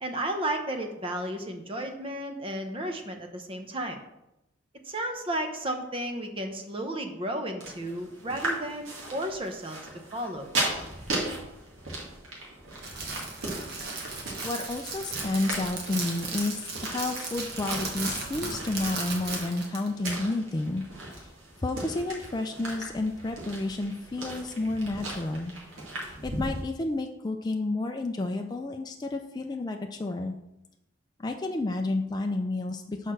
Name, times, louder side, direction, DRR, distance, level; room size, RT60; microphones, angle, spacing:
voice 1, 0.0-4.0 4.8-9.8 10.1-10.5, right 1 dB, 25° right, 5 dB, 0.7 m, -33 dB
sound 1, 7.6-26.6, right 2 dB, 85° right, 2.2 m, -37 dB
Crackle, 12.7-19.9, right 3 dB, 55° right, 1.6 m, -36 dB
voice 2, 14.4-21.3 21.6-25.5 26.0-30.4 31.2-33.1, left 2 dB, 20° left, 3 dB, 0.4 m, -31 dB
6.5 x 4.5 x 6.0 m, 0.90 s
head